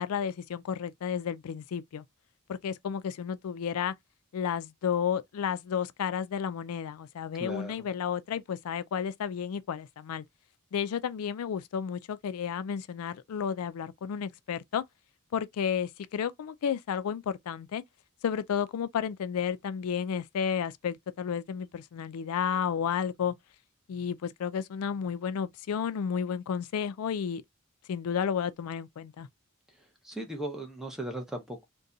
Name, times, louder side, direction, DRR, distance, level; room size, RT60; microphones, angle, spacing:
voice 1, 0.0-2.0 2.5-3.9 4.3-10.2 10.7-14.8 15.3-17.8 18.2-23.3 23.9-27.4 27.9-29.3, left 7 dB, 85° left, 0.4 m, -32 dB
voice 2, 7.4-7.9 29.7-31.6, right 1 dB, ahead, 0.6 m, -38 dB
2.6 x 2.2 x 3.7 m
head